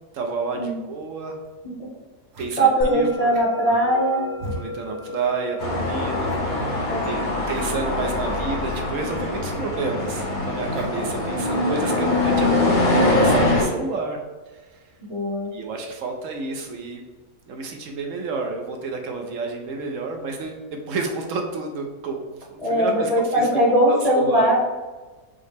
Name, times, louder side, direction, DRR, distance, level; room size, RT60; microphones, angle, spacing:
voice 1, 0.1-1.4 2.3-3.3 3.6-4.2 4.5-12.5 12.9-14.2 14.6-14.8 15.5-17.0 17.5-23.5 23.9-24.6, right 3 dB, 70° right, 3 dB, 0.9 m, -30 dB
sound 1, 1.5-1.6 2.3-2.5 3.3-3.7 4.4-4.6 5.2-5.3 5.6-5.7 6.2-6.6 7.5-7.7 8.7-8.8 9.1-9.2 10.7-11.0, right 1 dB, 55° right, 1.0 m, -37 dB
voice 2, 2.6-4.3 6.9-7.3 15.1-15.5 22.6-24.6, right 1 dB, 30° left, -5 dB, 0.8 m, -20 dB
Musical instrument, 2.8-13.4, left 2 dB, 50° left, 0.3 m, -38 dB
sound 2, 5.6-13.6, left 2 dB, 85° left, 1.5 m, -23 dB
5.6 x 2.1 x 3.3 m, 1.3 s
omnidirectional pair, 1.5 m